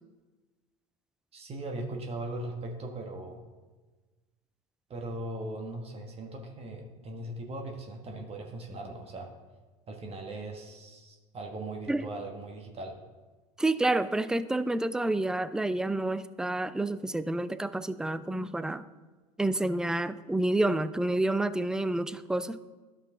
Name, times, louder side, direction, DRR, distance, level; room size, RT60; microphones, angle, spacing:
voice 1, 1.3-3.4 4.9-9.3 9.9-13.0, right 2 dB, 30° right, 2 dB, 1.4 m, -39 dB
voice 2, 13.6-18.8 19.4-22.6, right 2 dB, 5° right, 14 dB, 0.3 m, -29 dB
12.5 x 5.5 x 3.5 m, 1.3 s
hypercardioid pair, 75°, 19 cm